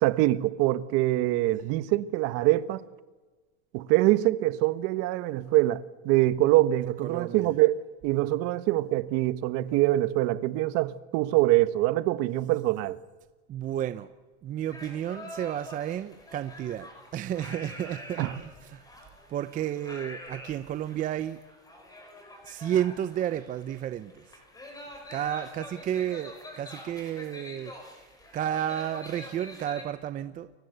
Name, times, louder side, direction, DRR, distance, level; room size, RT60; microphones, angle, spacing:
voice 1, 0.0-2.8 3.7-7.7 8.0-13.0 18.2-18.3, right 16 dB, 45° right, 1.4 m, -24 dB
voice 2, 7.0-7.5 13.5-14.1 14.4-21.4 22.4-24.3 25.1-30.5, right 10 dB, 25° right, 0.8 m, -32 dB
sound 1, 14.7-29.8, left 1 dB, 10° left, 5.4 m, -46 dB
30.0 x 22.5 x 8.1 m
supercardioid pair, 150°, 35 cm